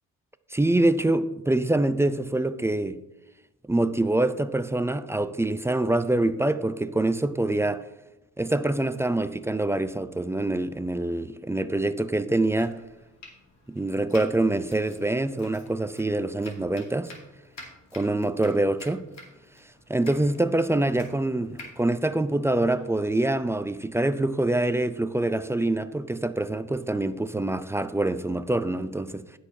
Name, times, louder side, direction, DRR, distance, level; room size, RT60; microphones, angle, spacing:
voice 1, 0.5-3.0 3.7-7.8 8.4-12.8 13.7-17.1 17.9-19.0 19.9-29.2, right 2 dB, 10° right, 0.4 m, -25 dB
Domestic sounds home sounds, 12.4-23.0, left 2 dB, 60° left, 2.4 m, -50 dB
15.5 x 6.4 x 2.7 m
cardioid pair, 90°, 30 cm